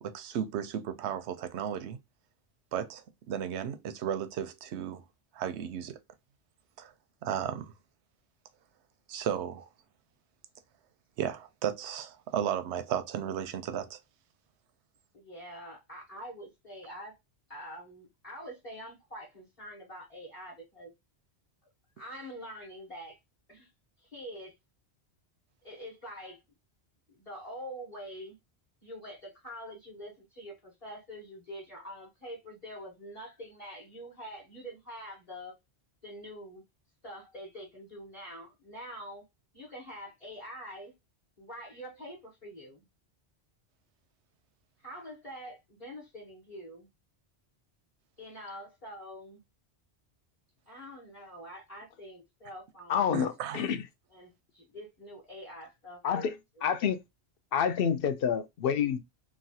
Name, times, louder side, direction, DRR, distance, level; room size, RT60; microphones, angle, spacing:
voice 1, 0.0-2.0 2.7-5.0 5.3-6.0 6.8-6.9 7.2-7.7 9.1-9.6 11.2-14.0 53.1-53.6, right 9 dB, 90° right, 0.9 m, -34 dB
voice 2, 15.1-17.1 17.5-20.9 22.0-23.2 23.5-23.7 24.0-24.5 25.6-26.4 27.2-28.4 28.8-35.6 36.0-36.6 37.0-39.2 39.5-40.9 41.4-42.8 44.8-46.9 48.2-49.4 50.7-53.3 53.6-53.7 54.1-56.3 56.6-56.7, equal, 35° left, 1.2 m, -45 dB
voice 3, 52.9-53.8 56.0-56.3 56.6-57.0 57.5-59.0, left 7 dB, 65° left, 0.7 m, -28 dB
3.0 x 2.4 x 2.7 m
omnidirectional pair, 1.1 m